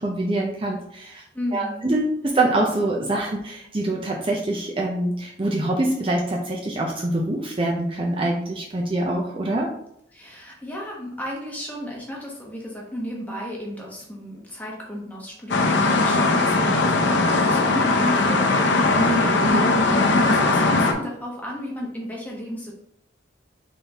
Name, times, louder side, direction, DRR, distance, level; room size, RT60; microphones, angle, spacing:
voice 1, 0.0-1.2 1.5-9.7 16.7-16.8 18.9-19.7, right 1 dB, 30° right, -1 dB, 0.5 m, -25 dB
voice 2, 1.3-1.9 10.1-22.7, left 1 dB, 10° left, -3 dB, 1.1 m, -33 dB
sound 1, 15.5-20.9, left 3 dB, 65° left, 0.6 m, -19 dB
4.1 x 3.6 x 3.5 m, 0.73 s
head